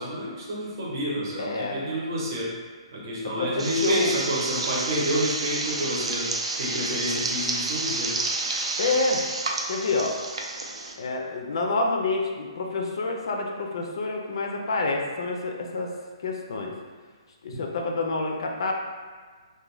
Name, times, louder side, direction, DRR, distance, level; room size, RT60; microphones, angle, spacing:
voice 1, 0.0-2.5 2.9-6.3 6.6-8.1, equal, 40° right, -5 dB, 0.7 m, -29 dB
voice 2, 1.4-1.8 3.2-4.2 8.8-9.2 9.7-10.1 11.0-15.9 16.2-16.7 17.4-18.7, left 3 dB, 55° left, 1 dB, 0.3 m, -28 dB
sound 1, 3.6-10.9, right 3 dB, 85° right, 0.4 m, -30 dB
2.4 x 2.1 x 3.0 m, 1.5 s
hypercardioid pair, 175°, 3 cm